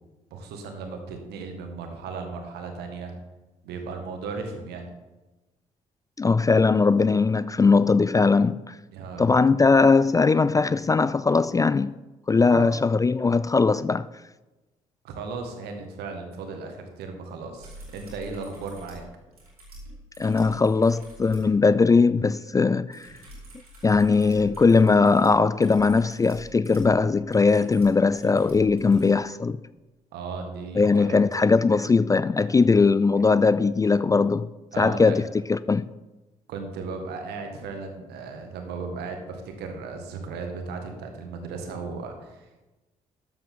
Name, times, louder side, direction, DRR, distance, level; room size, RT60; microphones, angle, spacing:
voice 1, 0.3-3.2 3.6-4.9 8.9-9.4 12.4-12.8 15.0-19.0 30.1-31.2 34.7-35.2 36.5-42.7, right 4 dB, 65° right, 2.0 m, -36 dB
voice 2, 6.2-8.7 9.2-12.0 12.3-14.1 20.2-23.1 23.8-29.6 30.8-34.5 34.8-35.2 35.5-35.9, left 4 dB, 20° left, 0.4 m, -20 dB
sound 1, 17.6-21.5 22.9-29.1 30.9-31.0, equal, 90° right, 2.7 m, -46 dB
13.0 x 9.5 x 3.9 m
figure-of-eight pair, 45°, 18 cm